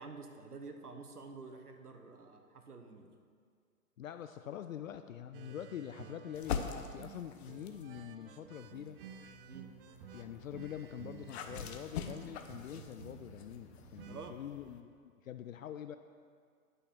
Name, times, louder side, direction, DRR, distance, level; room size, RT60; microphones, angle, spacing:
voice 1, 0.0-3.1 9.5-9.7 14.0-14.4, right 4 dB, 80° right, 5 dB, 1.3 m, -49 dB
voice 2, 4.0-9.0 10.1-16.0, left 10 dB, 60° left, 9 dB, 0.6 m, -45 dB
sound 1, 5.3-14.3, right 9 dB, 40° right, 0.5 m, -53 dB
sound 2, 6.3-7.9 8.6-14.8, left 7 dB, 45° left, 0.9 m, -45 dB
11.0 x 6.4 x 6.2 m, 2.1 s
figure-of-eight pair, 110°, 45 cm